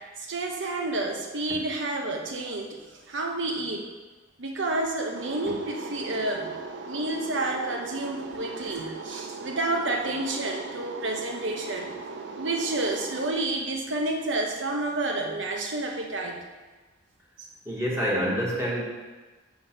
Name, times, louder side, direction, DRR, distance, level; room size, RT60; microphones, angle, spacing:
voice 1, 0.2-2.8 3.1-3.9 4.4-6.5 6.8-11.9 12.4-16.4, right 2 dB, 90° right, 1 dB, 0.9 m, -30 dB
sound 1, 5.2-13.3, right 3 dB, 70° right, 0.5 m, -39 dB
voice 2, 17.7-18.8, equal, 15° right, -5 dB, 1.2 m, -26 dB
5.1 x 4.6 x 5.7 m, 1.3 s
head